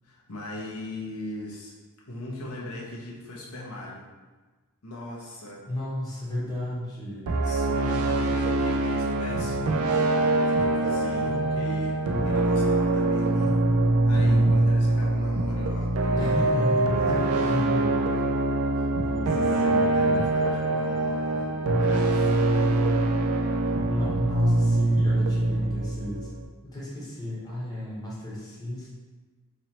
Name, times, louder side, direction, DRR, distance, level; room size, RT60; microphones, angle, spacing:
voice 1, 0.0-1.7 2.1-4.1 4.8-5.6 7.4-13.6 14.0-16.5 17.1-17.6 18.7-18.9 19.3-23.1, left 1 dB, 80° left, -4 dB, 0.8 m, -39 dB
voice 2, 5.7-7.3 14.1-14.7 16.1-17.1 17.5-18.2 18.9-20.2 23.9-26.3 26.6-28.9, left 1 dB, 15° left, -7 dB, 1.1 m, -32 dB
sound 1, 7.3-26.4, right 2 dB, 75° right, 0.4 m, -24 dB
3.1 x 3.0 x 4.1 m, 1.3 s
head